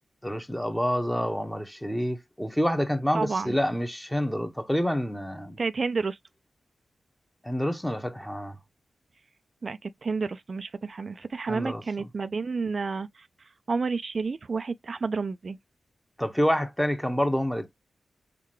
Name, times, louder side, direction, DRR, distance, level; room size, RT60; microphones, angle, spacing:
voice 1, 0.2-5.6 7.4-8.6 11.5-11.8 16.2-17.7, equal, 5° left, 1.1 m, -27 dB
voice 2, 3.1-3.6 5.6-6.2 9.6-15.6, right 4 dB, 60° right, 0.4 m, -30 dB
3.7 x 3.2 x 3.1 m
cardioid pair, 45°, 0 cm